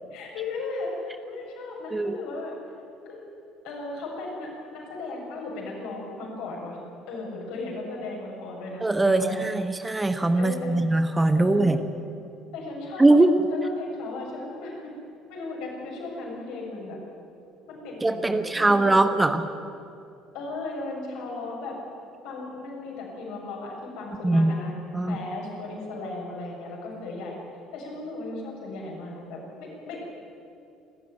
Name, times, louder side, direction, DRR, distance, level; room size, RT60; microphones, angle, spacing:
voice 1, 0.1-2.5 3.1-3.2 3.6-6.8 7.1-9.5 10.4-10.7 11.4-11.7 12.5-13.2 13.5-14.9 15.3-17.0 17.7-19.2 20.3-21.8 22.2-24.8 25.0-27.4 27.7-30.0, left 3 dB, 60° left, -2 dB, 7.4 m, -36 dB
voice 2, 8.8-11.8 13.0-13.4 18.0-19.4 24.2-24.5 24.9-25.2, right 2 dB, 15° right, 9 dB, 1.2 m, -21 dB
28.0 x 14.0 x 9.4 m, 2.6 s
figure-of-eight pair, 55°, 0 cm